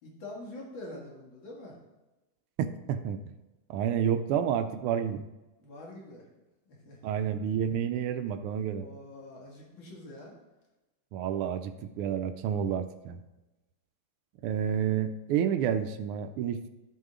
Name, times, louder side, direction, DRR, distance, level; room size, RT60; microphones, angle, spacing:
voice 1, 0.0-1.8 5.6-6.3 6.7-7.1 8.8-10.4, left 1 dB, 60° left, -2 dB, 2.5 m, -45 dB
voice 2, 2.9-3.3 3.7-5.3 7.0-8.9 11.1-13.2 14.4-16.6, right 8 dB, 85° right, 8 dB, 1.5 m, -29 dB
12.5 x 5.5 x 3.7 m, 1.1 s
omnidirectional pair, 2.4 m